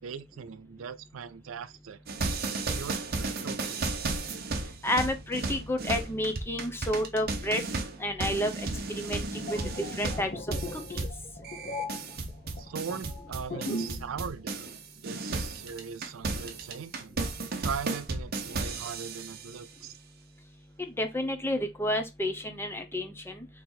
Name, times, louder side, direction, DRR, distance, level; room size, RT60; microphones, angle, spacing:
voice 1, 0.0-2.0 2.4-3.9 12.6-19.9, right 6 dB, 85° right, 0.5 m, -40 dB
sound 1, 2.1-14.8 15.0-19.4, right 3 dB, 50° right, 0.8 m, -34 dB
voice 2, 4.8-7.6 8.0-8.5 9.0-9.6 10.0-10.3 20.8-23.5, left 1 dB, 10° left, 0.7 m, -30 dB
sound 2, 9.3-14.1 14.4-14.6, left 1 dB, 40° left, 1.1 m, -38 dB
4.4 x 3.0 x 3.9 m
head